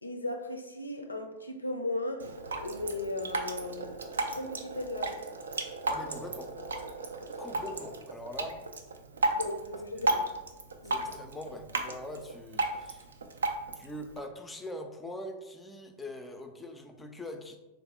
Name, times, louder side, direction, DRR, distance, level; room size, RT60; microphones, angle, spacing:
voice 1, 0.0-2.3 2.6-4.0 4.3-5.3 9.3-10.3 10.8-11.1, left 2 dB, 80° left, 5 dB, 0.4 m, -36 dB
Drip, 2.2-14.2, right 2 dB, 70° right, 0.3 m, -34 dB
voice 2, 5.9-6.5 7.4-8.6 9.9-10.2 10.8-13.1 13.7-17.6, left 1 dB, 10° left, 4 dB, 0.4 m, -42 dB
3.4 x 2.0 x 4.2 m, 1.1 s
figure-of-eight pair, 90°, 0 cm